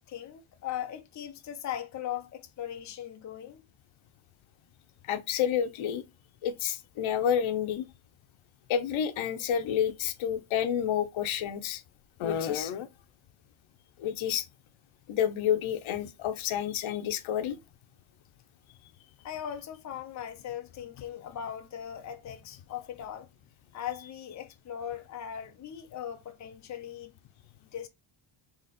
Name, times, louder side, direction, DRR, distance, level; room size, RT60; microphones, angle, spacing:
voice 1, 0.1-3.6 19.2-23.3 23.7-27.1 27.7-27.9, left 10 dB, 40° left, 0.6 m, -39 dB
voice 2, 5.1-6.0 6.4-7.8 8.7-11.8 12.2-12.9 14.0-14.5 15.1-17.6, left 9 dB, 80° left, 0.7 m, -29 dB
4.0 x 2.9 x 4.1 m
wide cardioid pair, 170°, 47 cm